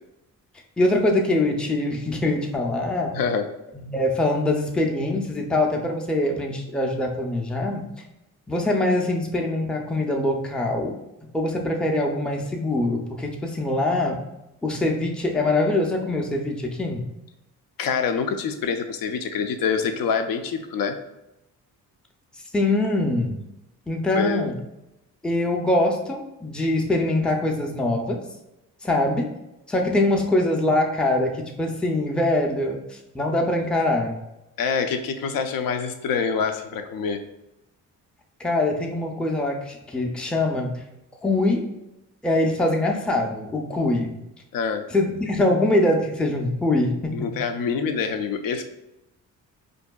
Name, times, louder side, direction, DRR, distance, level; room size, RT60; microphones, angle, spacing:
voice 1, 0.8-3.1 3.7-7.9 8.5-11.0 11.3-14.2 14.6-17.0 22.5-23.3 23.9-24.5 25.2-28.2 28.8-29.3 29.7-34.2 38.4-40.7 41.2-41.7 42.2-44.2 44.9-47.2, left 2 dB, 5° left, 1 dB, 0.4 m, -23 dB
voice 2, 3.1-3.5 17.8-21.0 24.1-24.4 34.6-37.2 44.5-44.9 47.1-48.6, left 6 dB, 80° left, 7 dB, 0.5 m, -26 dB
4.6 x 2.6 x 2.2 m, 0.91 s
cardioid pair, 110°, 33 cm